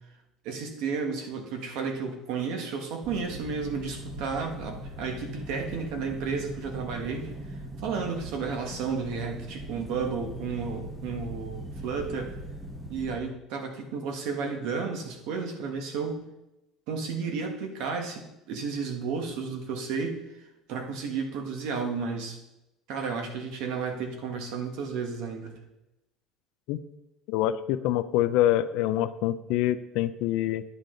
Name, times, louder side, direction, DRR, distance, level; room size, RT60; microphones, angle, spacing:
voice 1, 0.4-7.3 7.8-12.4 12.9-16.2 16.9-20.2 20.7-22.4 22.9-25.5, right 5 dB, 70° right, 4 dB, 1.6 m, -32 dB
sound 1, 3.0-13.2, right 1 dB, 15° right, 1.4 m, -40 dB
voice 2, 27.3-30.6, left 13 dB, 75° left, 13 dB, 0.5 m, -25 dB
10.5 x 8.3 x 3.9 m, 0.93 s
cardioid pair, 135°, 0 cm